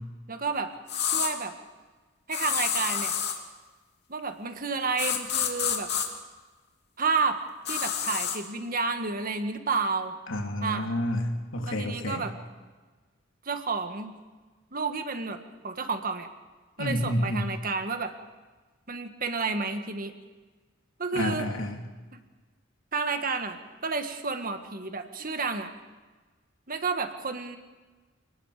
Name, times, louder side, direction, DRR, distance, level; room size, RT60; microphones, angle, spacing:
voice 1, 0.3-0.7 1.0-1.5 2.3-3.2 4.1-5.9 7.0-7.4 7.7-10.1 10.6-10.9 11.6-12.3 13.5-14.1 14.7-16.3 16.8-18.1 18.9-20.1 21.0-21.5 22.1-22.2 22.9-23.6 23.8-25.7 26.7-27.6, right 4 dB, 45° right, 7 dB, 1.8 m, -30 dB
sound 1, 0.9-1.3 2.3-3.4 5.0-6.1 7.7-8.4, left 8 dB, 60° left, 2.6 m, -28 dB
voice 2, 10.3-12.2 16.8-17.5 21.1-21.8, left 1 dB, 90° left, 2 dB, 3.1 m, -29 dB
28.5 x 19.5 x 5.1 m, 1.3 s
head